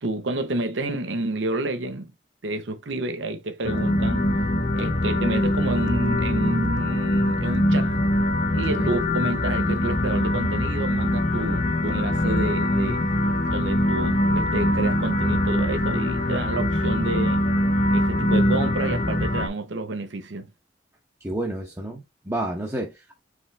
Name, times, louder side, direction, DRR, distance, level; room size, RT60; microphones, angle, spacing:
voice 1, 0.0-2.1 2.4-4.3 4.7-8.0 8.5-13.0 13.5-17.4 17.9-20.5, right 2 dB, 85° right, 0.8 m, -29 dB
sound 1, 3.6-19.5, left 1 dB, 45° left, 0.9 m, -23 dB
voice 2, 21.2-23.2, right 1 dB, 15° right, 0.8 m, -30 dB
5.0 x 3.3 x 3.2 m
head